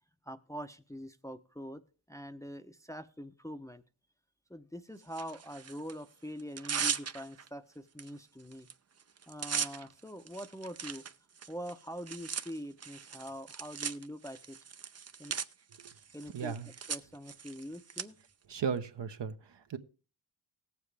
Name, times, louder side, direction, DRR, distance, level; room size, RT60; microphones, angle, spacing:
voice 1, 0.2-3.8 4.5-8.7 9.3-11.0 11.5-14.6 15.2-15.3 16.1-16.6 16.9-18.2, equal, 5° left, 8 dB, 0.7 m, -44 dB
Tearing, 5.1-5.9 6.4-7.5 8.0-8.1 8.4-8.7 9.0-18.0, right 6 dB, 35° right, 0.6 m, -39 dB
voice 2, 16.3-16.7 18.5-19.8, right 6 dB, 60° right, 8 dB, 1.0 m, -36 dB
17.5 x 7.3 x 3.4 m, 0.35 s
cardioid pair, 55°, 48 cm